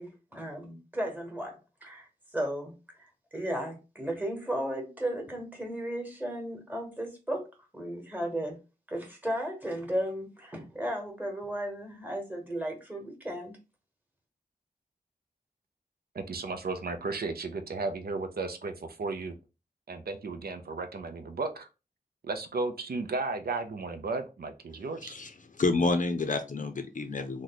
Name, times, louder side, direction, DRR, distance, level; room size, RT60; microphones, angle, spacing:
voice 1, 0.0-8.6 8.9-13.6, right 1 dB, 10° right, 1.2 m, -35 dB
voice 2, 16.1-19.3 19.9-21.7 22.2-25.2, right 3 dB, 70° right, 0.5 m, -34 dB
voice 3, 25.6-27.4, left 3 dB, 55° left, 0.5 m, -29 dB
3.1 x 2.2 x 3.9 m
wide cardioid pair, 70°, 16 cm